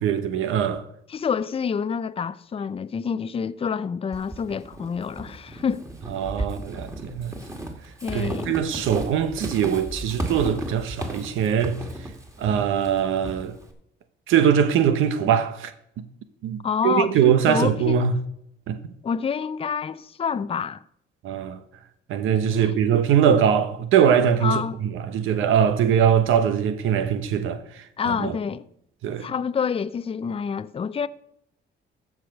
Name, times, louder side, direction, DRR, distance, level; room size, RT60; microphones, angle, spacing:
voice 1, 0.0-0.8 6.1-7.3 8.1-11.8 12.4-13.5 14.3-15.7 16.4-16.6 16.8-18.1 18.7-18.8 21.2-21.6 22.1-24.6 25.1-28.4 29.0-29.3, right 8 dB, 85° right, 0.9 m, -22 dB
voice 2, 1.1-5.9 8.0-8.6 16.6-18.0 19.0-20.8 22.5-22.7 24.4-24.8 28.0-28.7 29.2-31.1, left 6 dB, 30° left, 0.5 m, -27 dB
Walk footsteps / Squeak, 4.1-13.7, right 1 dB, 15° right, 2.2 m, -35 dB
14.5 x 4.9 x 6.2 m
cardioid pair, 90°, 20 cm